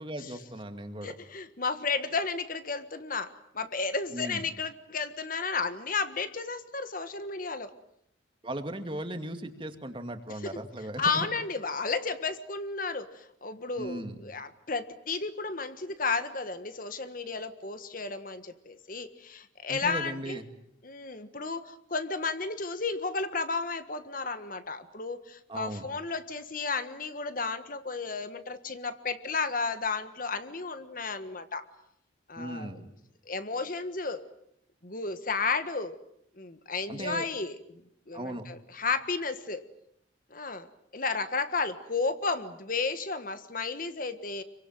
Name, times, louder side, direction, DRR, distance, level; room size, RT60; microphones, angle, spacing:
voice 1, 0.0-1.2 4.1-4.4 8.4-11.3 13.8-14.1 19.7-20.4 25.5-25.9 32.4-32.9 36.9-37.3 38.1-38.5, right 1 dB, 25° right, 7 dB, 2.3 m, -37 dB
voice 2, 1.0-7.7 10.4-10.6 11.0-20.4 20.8-31.6 32.3-32.8 33.2-34.2 34.8-36.0 36.4-37.8 38.1-39.6 40.3-40.7 40.9-44.4, left 4 dB, 45° left, 10 dB, 1.5 m, -33 dB
27.0 x 24.0 x 9.0 m, 0.74 s
head